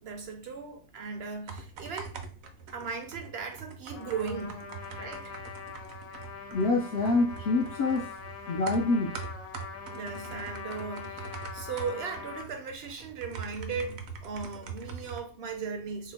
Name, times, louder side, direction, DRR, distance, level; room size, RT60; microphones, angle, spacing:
voice 1, 0.0-2.2 2.7-4.7 5.0-5.4 9.9-16.1, right 5 dB, 60° right, 0.7 m, -37 dB
sound 1, 1.3-15.2, right 5 dB, 80° right, 1.0 m, -43 dB
Trumpet, 3.9-12.5, left 6 dB, 85° left, 1.1 m, -43 dB
voice 2, 6.5-8.1 8.5-9.1, left 3 dB, 65° left, 0.6 m, -26 dB
2.9 x 2.1 x 4.1 m
omnidirectional pair, 1.4 m